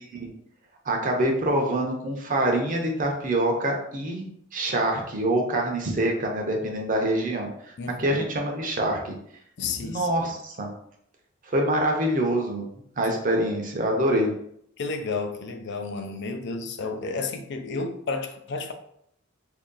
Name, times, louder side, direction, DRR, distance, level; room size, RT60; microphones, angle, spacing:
voice 1, 0.8-7.7 8.0-9.1 9.8-10.7 11.5-12.7 13.0-14.3, right 1 dB, 45° right, 2 dB, 0.7 m, -25 dB
voice 2, 7.8-8.2 9.6-10.3 14.8-18.7, left 4 dB, 60° left, 6 dB, 0.4 m, -32 dB
3.0 x 2.7 x 3.8 m, 0.70 s
head